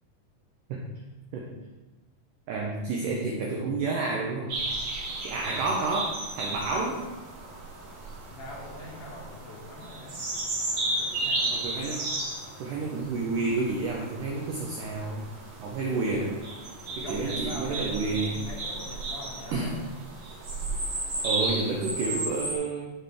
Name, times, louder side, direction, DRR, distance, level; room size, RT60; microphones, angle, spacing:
voice 1, 2.5-4.6 5.2-7.0 11.4-12.1 12.6-15.3 15.6-16.4 17.0-18.4 19.5-19.8 21.2-22.9, right 3 dB, 85° right, -1 dB, 1.8 m, -30 dB
sound 1, 4.5-22.6, right 2 dB, 50° right, 2.4 m, -34 dB
voice 2, 8.3-10.2 10.7-11.5 16.8-19.7, left 1 dB, 65° left, -3 dB, 2.1 m, -42 dB
11.5 x 4.2 x 3.5 m, 1.1 s
omnidirectional pair, 4.7 m